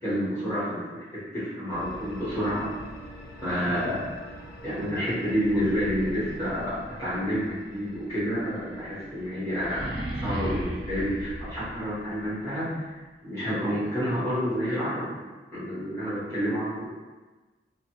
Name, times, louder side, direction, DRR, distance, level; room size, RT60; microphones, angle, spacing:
voice 1, 0.0-2.7 3.4-4.1 4.6-15.1 15.5-16.9, equal, 15° left, -13 dB, 1.2 m, -29 dB
sound 1, 1.7-10.6, equal, 55° left, 0.5 m, -46 dB
sound 2, 5.4-12.3, right 1 dB, 60° right, 0.6 m, -37 dB
2.6 x 2.5 x 2.9 m, 1.3 s
head